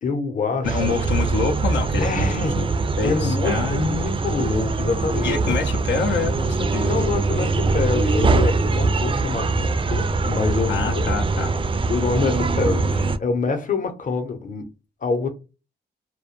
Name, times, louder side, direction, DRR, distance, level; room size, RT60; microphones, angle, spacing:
voice 1, 0.0-0.8 2.0-2.6 3.0-5.6 6.8-11.0 11.9-14.7 15.0-15.3, left 4 dB, 45° left, 0.7 m, -26 dB
voice 2, 0.6-2.7 3.0-4.2 5.2-7.0 10.7-11.6, left 5 dB, 85° left, 0.5 m, -26 dB
sound 1, 0.6-13.2, right 3 dB, 30° right, 0.3 m, -22 dB
2.2 x 2.1 x 2.8 m
cardioid pair, 65°, 18 cm